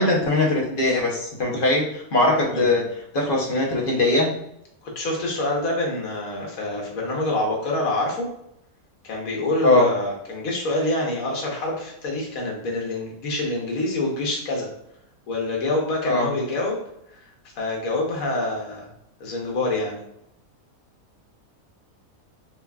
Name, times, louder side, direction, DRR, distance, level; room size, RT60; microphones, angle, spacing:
voice 1, 0.0-2.8 3.1-4.3 9.6-9.9 16.1-16.3, left 2 dB, 45° left, -2 dB, 0.8 m, -20 dB
voice 2, 2.5-2.8 4.8-8.3 9.0-14.7 15.3-16.8 17.6-18.9 19.2-20.0, left 2 dB, 75° left, -1 dB, 1.4 m, -26 dB
4.5 x 2.3 x 2.3 m, 0.76 s
omnidirectional pair, 1.5 m